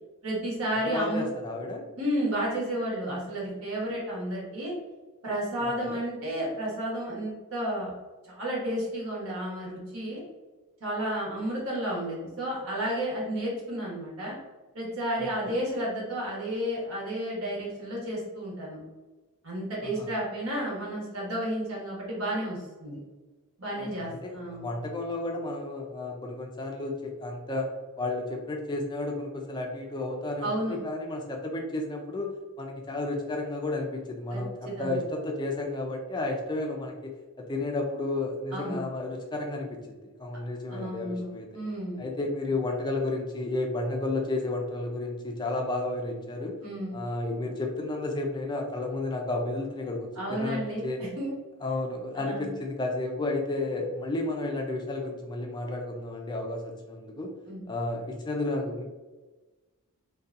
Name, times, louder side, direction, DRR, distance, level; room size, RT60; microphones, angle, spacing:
voice 1, 0.2-1.3 2.0-4.7 5.2-7.9 8.2-10.2 10.8-14.3 14.7-18.8 19.4-23.0 23.6-24.7 30.4-30.8 34.3-35.0 38.5-38.8 40.7-42.0 46.6-47.0 50.2-51.3 52.2-52.5 57.5-57.6, right 1 dB, 65° right, -4 dB, 1.0 m, -32 dB
voice 2, 0.9-1.9 5.6-6.0 15.4-15.6 19.8-20.1 23.8-27.7 28.0-32.3 32.6-41.5 42.0-46.6 46.9-51.0 51.6-57.3 57.7-58.8, left 2 dB, 20° left, 1 dB, 0.3 m, -32 dB
2.6 x 2.2 x 2.4 m, 1.2 s
head